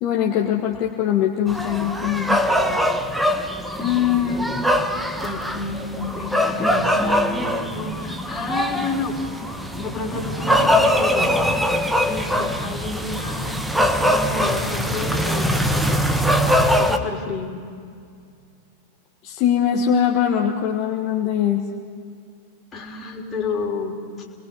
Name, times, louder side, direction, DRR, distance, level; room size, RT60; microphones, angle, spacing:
voice 1, 0.0-2.4 19.2-21.6, left 9 dB, 40° left, -1 dB, 1.7 m, -21 dB
sound 1, 1.5-17.0, equal, 5° right, 1.4 m, -22 dB
voice 2, 3.8-4.5 5.2-9.2 9.7-11.4 12.0-16.0 16.8-17.6 22.7-24.0, left 5 dB, 20° left, 0 dB, 3.6 m, -29 dB
29.5 x 21.0 x 5.5 m, 2.3 s
figure-of-eight pair, 90°, 0 cm